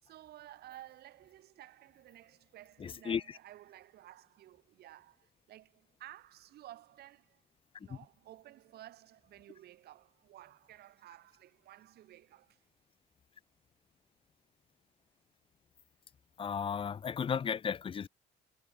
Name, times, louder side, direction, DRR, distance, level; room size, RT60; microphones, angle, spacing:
voice 1, 0.0-7.4 7.8-12.6, right 14 dB, 70° right, 6.1 m, -54 dB
voice 2, 2.8-3.2 16.4-18.1, left 7 dB, 30° left, 0.8 m, -34 dB
cardioid pair, 110°, 17 cm